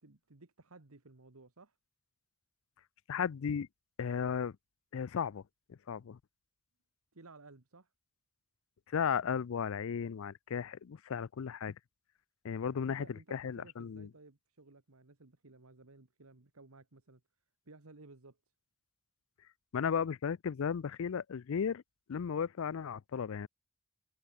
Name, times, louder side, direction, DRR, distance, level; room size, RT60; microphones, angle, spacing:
voice 1, 0.0-1.8 7.1-7.9 12.6-17.2 17.6-18.4, right 3 dB, 75° right, 1.5 m, -57 dB
voice 2, 3.1-3.7 4.0-4.6 4.9-5.4 5.7-6.2 8.9-11.8 12.4-14.1 19.7-21.8 22.1-23.5, left 7 dB, 65° left, 0.4 m, -35 dB
head